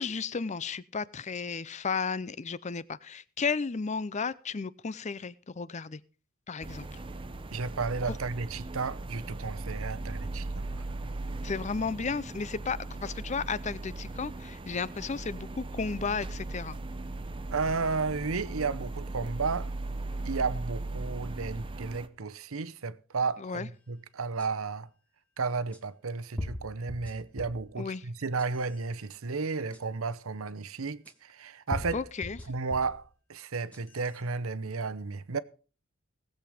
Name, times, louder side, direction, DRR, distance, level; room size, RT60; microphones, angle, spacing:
voice 1, 0.0-6.0 6.5-6.9 8.1-8.2 11.4-16.8 23.4-23.7 27.8-28.0 31.9-32.4, left 5 dB, 35° left, 0.5 m, -33 dB
sound 1, 6.6-22.1, right 2 dB, 25° right, 0.8 m, -38 dB
voice 2, 7.5-10.8 17.5-19.7 20.2-24.9 25.4-32.1 32.5-33.0 33.3-35.4, right 4 dB, 75° right, 0.8 m, -33 dB
sound 2, 24.4-24.5 25.7-25.8 26.4-27.7 28.2-28.8 29.7-29.8 31.1-31.2 31.7-33.0 33.5-34.1, left 1 dB, 5° left, 1.6 m, -39 dB
19.0 x 7.9 x 5.0 m
head